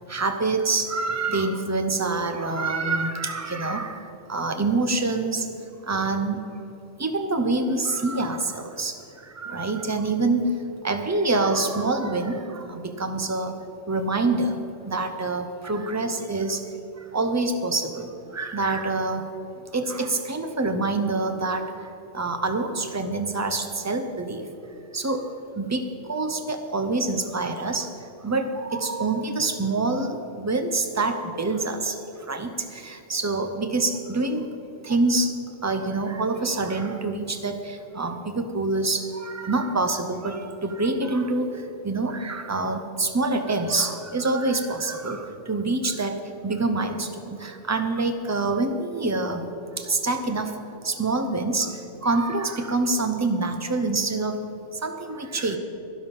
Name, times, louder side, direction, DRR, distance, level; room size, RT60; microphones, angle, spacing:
voice 1, 0.1-5.5 5.8-6.5 7.0-10.5 10.8-13.6 13.9-14.6 14.9-16.6 17.0-19.3 19.7-24.5 24.9-34.5 34.8-35.4 35.6-49.5 49.8-50.6 50.8-54.5 54.7-55.6, right 3 dB, 15° right, 6 dB, 0.6 m, -26 dB
12.5 x 11.0 x 5.4 m, 2.9 s
omnidirectional pair, 1.3 m